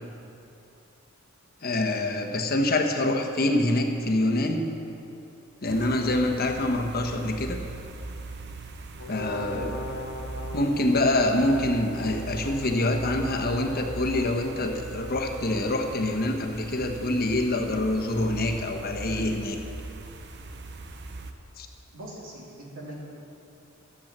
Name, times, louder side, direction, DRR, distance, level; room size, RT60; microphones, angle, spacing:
voice 1, 1.6-4.6 5.6-7.6 9.1-9.9 10.5-19.6 21.6-21.7, left 1 dB, 50° left, 3 dB, 1.2 m, -26 dB
sound 1, 5.7-21.3, right 3 dB, 55° right, 0.8 m, -40 dB
Brass instrument, 9.0-14.8, left 1 dB, 80° left, 1.1 m, -39 dB
voice 2, 21.9-22.9, right 1 dB, 75° right, -3 dB, 3.0 m, -41 dB
13.5 x 8.2 x 7.4 m, 2.8 s
head